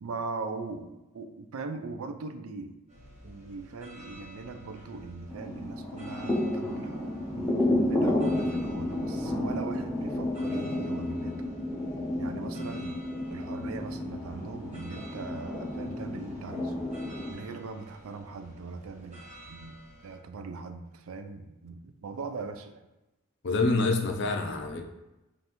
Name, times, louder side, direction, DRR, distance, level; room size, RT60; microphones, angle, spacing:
voice 1, 0.0-2.8 3.2-7.2 7.9-11.4 12.2-16.8 17.3-22.9, right 4 dB, 75° right, 8 dB, 0.4 m, -40 dB
sound 1, 2.9-20.2, equal, 30° right, 1.1 m, -51 dB
sound 2, 5.3-17.3, left 1 dB, 10° left, 0.7 m, -31 dB
voice 2, 23.4-24.8, left 3 dB, 50° left, 4 dB, 0.5 m, -26 dB
5.3 x 2.5 x 2.9 m, 0.98 s
head